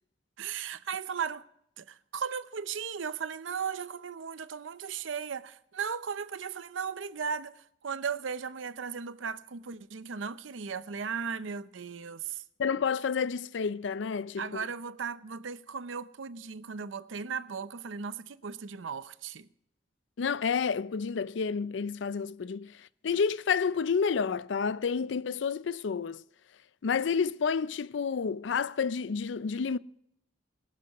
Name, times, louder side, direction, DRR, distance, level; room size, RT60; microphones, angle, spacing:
voice 1, 0.4-1.4 1.8-12.4 14.4-19.5, right 6 dB, 90° right, 0.6 m, -36 dB
voice 2, 12.6-14.6 20.2-26.2 26.8-29.8, left 6 dB, 70° left, 0.4 m, -30 dB
20.5 x 12.0 x 3.0 m
head